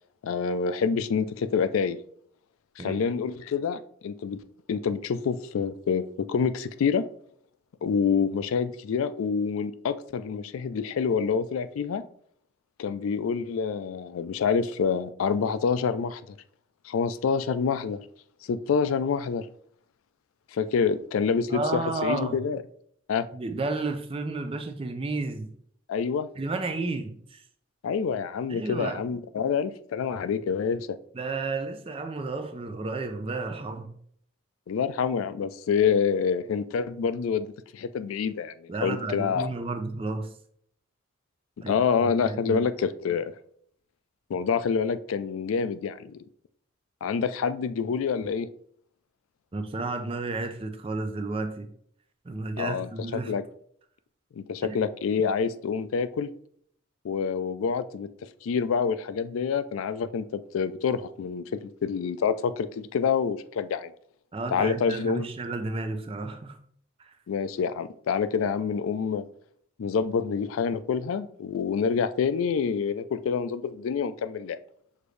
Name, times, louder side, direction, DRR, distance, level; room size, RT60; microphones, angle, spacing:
voice 1, 0.2-2.0 2.8-4.4 4.7-7.1 7.8-12.0 12.8-16.4 16.8-18.0 18.4-19.5 20.5-22.6 23.1-23.3 25.9-26.3 27.8-31.0 34.7-39.5 41.6-43.3 44.3-46.2 47.0-48.5 52.6-53.4 54.4-56.3 57.0-58.1 58.4-63.9 64.5-65.3 67.3-69.3 69.8-74.6, left 6 dB, 80° left, 0.3 m, -27 dB
voice 2, 21.5-22.4 23.3-25.5 26.4-27.4 28.5-29.0 31.1-33.9 38.7-40.3 41.6-42.6 49.5-51.7 52.2-53.3 54.6-54.8 64.3-66.6 67.0-67.1, right 3 dB, 25° right, 0.4 m, -32 dB
6.5 x 2.6 x 3.2 m
head